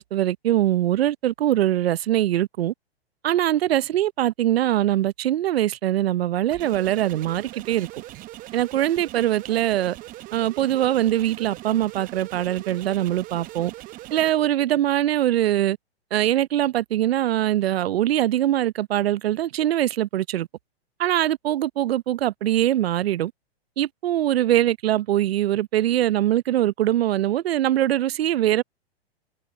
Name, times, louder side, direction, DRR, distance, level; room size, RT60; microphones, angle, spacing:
voice 1, 0.0-2.7 3.2-7.9 8.5-9.9 10.3-13.7 14.1-15.8 16.1-20.5 21.0-23.3 23.8-28.6, right 13 dB, 70° right, 0.8 m, -22 dB
sound 1, 6.5-14.3, right 17 dB, 25° right, 0.8 m, -40 dB
open air
hypercardioid pair, 125°, 32 cm